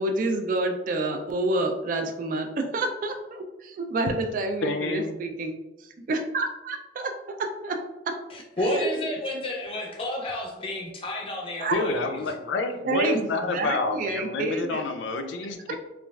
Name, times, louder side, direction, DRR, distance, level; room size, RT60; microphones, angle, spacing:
voice 1, 0.0-5.5 6.1-7.4 7.6-7.8 8.1-8.2 8.8-8.9 9.3-9.4 11.6-11.8 12.9-14.9, right 2 dB, 45° right, 4 dB, 0.3 m, -28 dB
voice 2, 4.6-5.1 11.7-15.7, left 3 dB, 80° left, 6 dB, 0.4 m, -28 dB
voice 3, 8.3-12.2, left 1 dB, 30° left, 0 dB, 0.5 m, -31 dB
3.0 x 2.4 x 2.3 m, 1.0 s
head